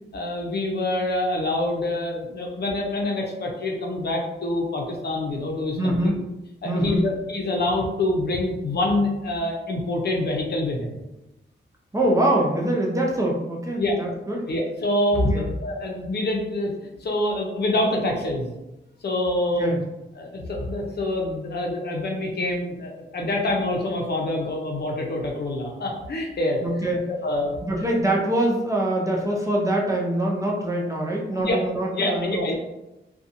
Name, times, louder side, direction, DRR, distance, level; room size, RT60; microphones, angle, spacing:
voice 1, 0.1-6.1 6.6-10.9 13.8-13.9 14.5-16.7 17.0-18.5 19.0-19.7 20.2-26.6 27.2-27.5 31.3-31.6 31.9-32.5, left 1 dB, 55° left, 0 dB, 0.6 m, -26 dB
voice 2, 5.8-6.3 6.6-7.0 11.9-14.5 15.3-15.5 19.6-19.8 26.6-27.1 27.6-32.5, right 1 dB, 15° right, -2 dB, 0.4 m, -24 dB
2.7 x 2.2 x 2.5 m, 0.95 s
wide cardioid pair, 130°, 20 cm